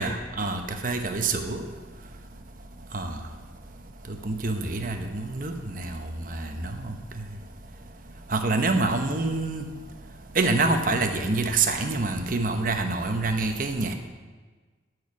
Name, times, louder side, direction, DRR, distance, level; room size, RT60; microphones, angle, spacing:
voice 1, 0.0-1.6 2.9-3.2 4.1-6.9 8.3-9.7 10.3-13.9, right 3 dB, 45° right, 5 dB, 0.9 m, -26 dB
13.5 x 4.6 x 6.0 m, 1.4 s
head